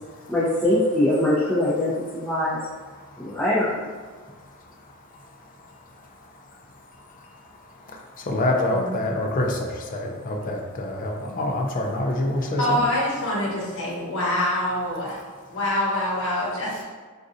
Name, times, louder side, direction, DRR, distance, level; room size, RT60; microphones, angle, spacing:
voice 1, 0.3-2.6 3.2-3.8, left 1 dB, 10° left, -12 dB, 0.7 m, -22 dB
voice 2, 2.9-3.4 4.2-12.9, left 1 dB, 35° left, 1 dB, 0.4 m, -29 dB
voice 3, 12.6-15.2 15.5-16.8, left 1 dB, 55° left, -5 dB, 1.0 m, -25 dB
4.0 x 2.5 x 2.6 m, 1.5 s
head